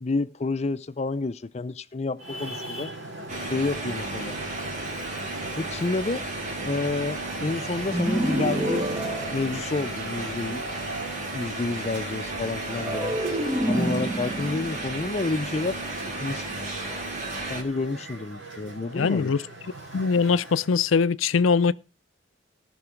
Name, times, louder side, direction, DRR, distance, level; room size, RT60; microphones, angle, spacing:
voice 1, 0.0-2.9 3.4-4.4 5.6-6.2 6.7-8.9 9.3-10.6 11.3-13.2 13.7-15.8 16.2-16.8 17.5-19.3, left 3 dB, 35° left, 0.5 m, -29 dB
Traffic noise roadway noise, 2.2-20.8, right 2 dB, 70° right, 3.9 m, -39 dB
sound 1, 3.3-17.6, right 2 dB, 40° right, 2.3 m, -34 dB
sound 2, 7.9-10.3 12.7-16.0, right 1 dB, 15° right, 1.0 m, -29 dB
voice 2, 18.9-19.4 19.9-21.7, left 5 dB, 90° left, 0.5 m, -22 dB
18.0 x 6.2 x 4.5 m
head